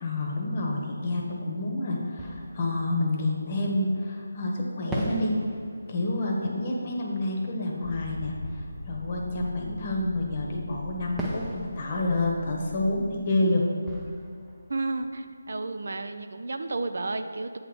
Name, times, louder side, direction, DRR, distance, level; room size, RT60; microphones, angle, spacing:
voice 1, 0.0-5.3 5.9-13.6, left 2 dB, 30° left, 0 dB, 1.0 m, -28 dB
Fireworks, 2.1-4.1 4.9-10.3 11.2-15.9, right 1 dB, 5° right, 0.5 m, -40 dB
Motor vehicle (road), 7.8-13.2, left 1 dB, 60° left, 0.9 m, -41 dB
voice 2, 14.7-17.6, right 3 dB, 60° right, 9 dB, 0.4 m, -32 dB
7.8 x 3.8 x 6.1 m, 2.3 s
figure-of-eight pair, 170°, 0 cm